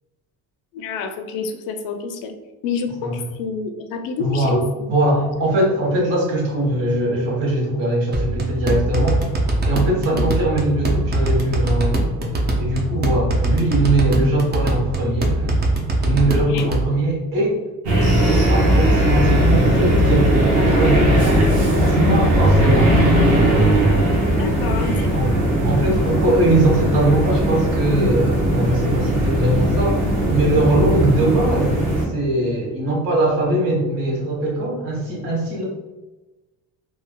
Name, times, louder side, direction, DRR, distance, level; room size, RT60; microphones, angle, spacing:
voice 1, 0.7-2.3 2.6-4.9 10.1-10.3 16.2-16.7 24.4-25.3 31.2-31.3, left 4 dB, 85° left, 6 dB, 0.5 m, -28 dB
voice 2, 4.2-4.6 4.9-9.2 9.6-12.3 12.6-15.6 16.0-17.6 18.2-21.6 21.9-23.0 25.1-25.3 25.6-30.0 30.3-31.8 32.0-35.7, right 1 dB, 85° right, -2 dB, 1.0 m, -21 dB
sound 1, 8.1-16.9, right 2 dB, 30° right, 0.5 m, -22 dB
sound 2, 17.8-32.0, right 1 dB, 65° right, 0.8 m, -18 dB
sound 3, 18.0-26.7 27.0-27.2 27.6-27.7, left 1 dB, 25° left, 0.5 m, -25 dB
3.1 x 2.3 x 2.2 m, 1.1 s
cardioid pair, 125°, 33 cm